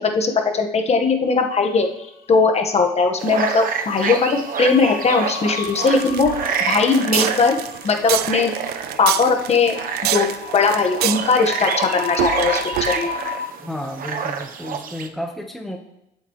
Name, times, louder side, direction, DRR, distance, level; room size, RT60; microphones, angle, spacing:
voice 1, 0.0-1.9 2.3-6.3 6.7-7.6 7.8-8.5 9.0-9.8 10.1-10.3 10.5-13.1, left 4 dB, 40° left, 4 dB, 1.5 m, -19 dB
sound 1, 1.5-2.2 2.5-2.8 4.0-13.5, left 9 dB, 65° left, 1.2 m, -34 dB
sound 2, 3.2-15.1, right 6 dB, 55° right, 1.0 m, -28 dB
sound 3, 5.6-13.3, right 14 dB, 70° right, 0.4 m, -27 dB
voice 2, 13.6-15.8, left 1 dB, ahead, 2 dB, 1.2 m, -32 dB
20.5 x 7.9 x 3.2 m, 0.85 s
cardioid pair, 110°, 17 cm